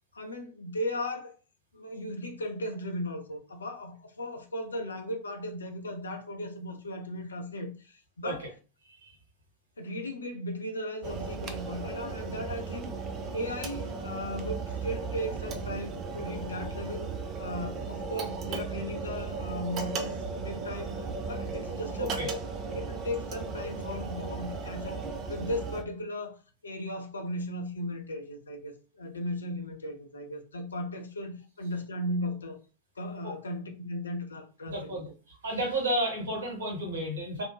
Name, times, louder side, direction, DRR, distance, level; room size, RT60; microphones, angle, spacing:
voice 1, 0.1-1.4 1.7-8.5 9.8-12.9 13.3-17.1 17.4-21.0 21.2-22.4 22.7-25.0 25.3-26.4 26.6-32.6 33.0-35.0, left 1 dB, 75° left, 0.5 m, -36 dB
sound 1, 11.0-25.8, right 4 dB, 30° right, 0.4 m, -36 dB
voice 2, 34.7-37.4, right 1 dB, 65° right, 1.2 m, -32 dB
2.6 x 2.0 x 3.2 m
figure-of-eight pair, 90°, 0 cm